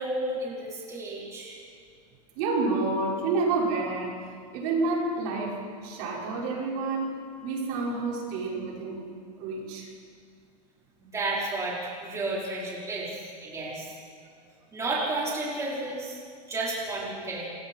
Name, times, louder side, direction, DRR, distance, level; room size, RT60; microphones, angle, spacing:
voice 1, 0.0-1.6 11.0-13.1 13.4-13.9 14.7-16.2 16.5-17.5, right 2 dB, 15° right, -6 dB, 4.8 m, -32 dB
voice 2, 2.4-4.2 4.5-9.0 9.4-9.9, right 3 dB, 55° right, -3 dB, 5.7 m, -29 dB
26.5 x 22.5 x 4.6 m, 2.2 s
supercardioid pair, 150°, 21 cm